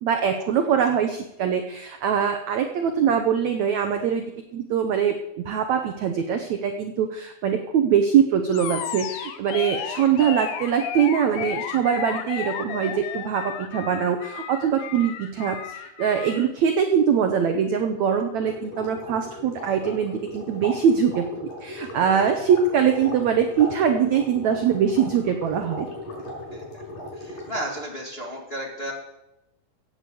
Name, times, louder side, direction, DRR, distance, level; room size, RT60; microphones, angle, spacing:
voice 1, 0.0-4.2 4.5-5.2 5.4-25.9, right 8 dB, 85° right, 6 dB, 1.6 m, -23 dB
Animal, 8.5-16.5, left 9 dB, 85° left, 3.1 m, -33 dB
voice 2, 9.6-10.1 14.8-14.9 21.9-22.3 26.5-26.8 27.1-28.9, right 1 dB, 20° left, -1 dB, 1.7 m, -35 dB
sound 1, 18.4-27.8, left 1 dB, 55° left, 6.9 m, -37 dB
16.5 x 8.8 x 7.8 m, 0.91 s
omnidirectional pair, 4.6 m